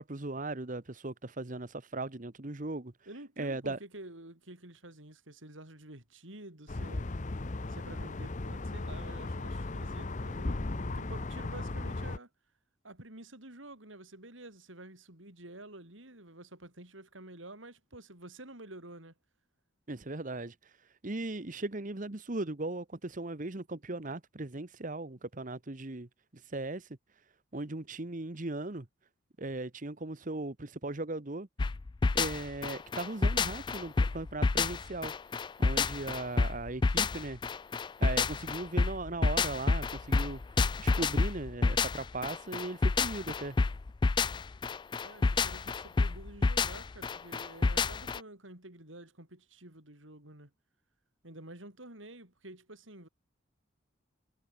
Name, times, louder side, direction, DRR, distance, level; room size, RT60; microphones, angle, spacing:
voice 1, 0.0-2.9 3.4-3.8 19.9-27.0 27.5-28.9 29.4-31.5 32.1-35.1 35.6-37.4 38.0-40.4 40.8-43.6, right 2 dB, 45° right, 1.2 m, -38 dB
voice 2, 3.1-7.1 7.7-12.3 12.8-19.1 45.0-50.5 51.2-53.1, right 1 dB, 90° right, 6.5 m, -49 dB
sound 1, 6.7-12.2, left 2 dB, 40° left, 0.8 m, -36 dB
sound 2, 31.6-48.2, left 4 dB, 25° left, 0.3 m, -29 dB
head